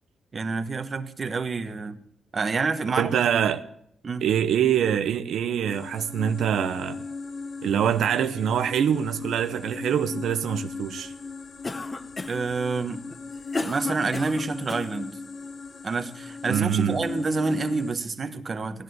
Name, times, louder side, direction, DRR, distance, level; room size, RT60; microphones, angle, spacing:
voice 1, 0.3-2.0 2.3-3.1 4.0-4.2 12.3-13.0 13.6-15.1 15.8-18.8, right 4 dB, 35° right, 1.4 m, -28 dB
voice 2, 2.9-3.6 4.2-7.0 7.6-11.1 16.5-17.0, right 9 dB, 85° right, 0.8 m, -24 dB
sound 1, 5.7-18.0, left 4 dB, 55° left, 2.6 m, -37 dB
Cough, 11.6-12.5 13.1-14.9, left 2 dB, 25° left, 1.2 m, -34 dB
16.5 x 11.0 x 7.9 m
cardioid pair, 115°, 0 cm